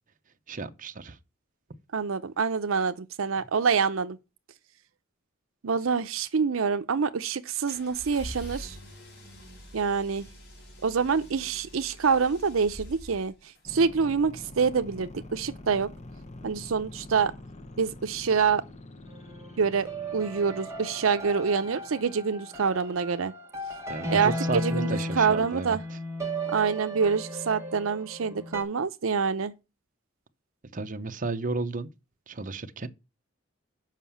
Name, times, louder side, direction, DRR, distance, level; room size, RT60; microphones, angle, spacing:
voice 1, 0.5-1.2 23.9-26.0 30.7-31.9 32.3-32.9, right 3 dB, 40° right, 0.8 m, -33 dB
voice 2, 1.9-4.2 5.6-8.8 9.7-10.3 10.8-13.3 13.7-15.9 16.4-17.3 17.8-18.6 19.6-23.3 24.1-25.8 26.5-29.5, right 5 dB, 75° right, 0.6 m, -26 dB
sound 1, 7.7-13.6, equal, 55° left, 4.1 m, -45 dB
sound 2, 13.6-22.3, left 1 dB, 35° left, 1.0 m, -46 dB
sound 3, 19.1-28.6, equal, 15° right, 1.4 m, -35 dB
7.4 x 5.6 x 7.1 m
head